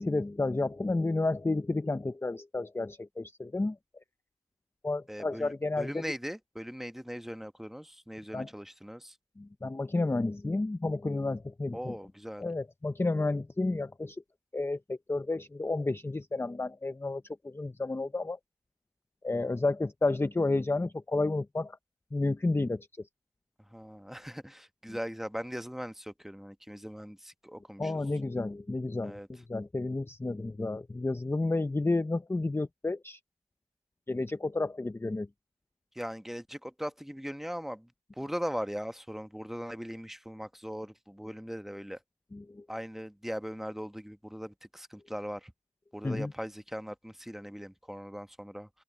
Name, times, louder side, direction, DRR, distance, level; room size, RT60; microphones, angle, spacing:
voice 1, 0.0-3.8 4.8-6.0 8.3-8.5 9.4-12.0 12.4-14.2 14.5-18.4 19.2-21.8 22.1-22.9 27.8-33.2 34.1-35.3 42.3-42.6 46.0-46.3, left 2 dB, 15° left, 0.5 m, -31 dB
voice 2, 5.1-9.2 11.7-12.5 23.7-27.9 29.0-29.3 35.9-37.9 38.2-42.0 42.7-45.5 45.9-48.7, equal, ahead, 1.0 m, -39 dB
open air
wide cardioid pair, 90°, 15 cm